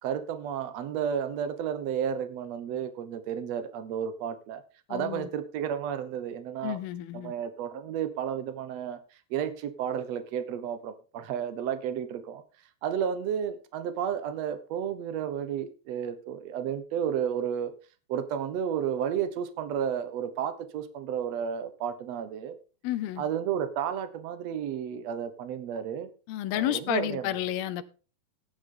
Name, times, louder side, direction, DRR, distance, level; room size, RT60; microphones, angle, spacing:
voice 1, 0.0-4.6 4.9-6.8 7.1-9.0 9.3-12.4 12.8-17.7 18.1-22.5 23.2-26.1 26.5-27.3, right 8 dB, 90° right, 1.4 m, -32 dB
voice 2, 4.9-5.3 6.6-7.3 22.8-23.2 26.3-27.8, left 13 dB, 75° left, 2.6 m, -31 dB
15.5 x 10.5 x 3.8 m
omnidirectional pair, 4.8 m